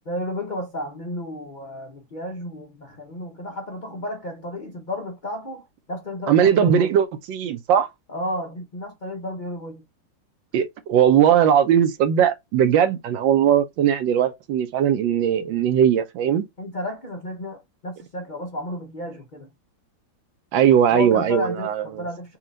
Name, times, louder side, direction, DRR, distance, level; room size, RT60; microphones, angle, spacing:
voice 1, 0.1-7.0 8.1-9.8 16.6-19.5 20.9-22.4, left 1 dB, 50° left, 0.5 m, -32 dB
voice 2, 6.3-7.9 10.5-16.4 20.5-22.0, right 9 dB, 85° right, 1.4 m, -19 dB
4.4 x 2.4 x 3.8 m
omnidirectional pair, 2.0 m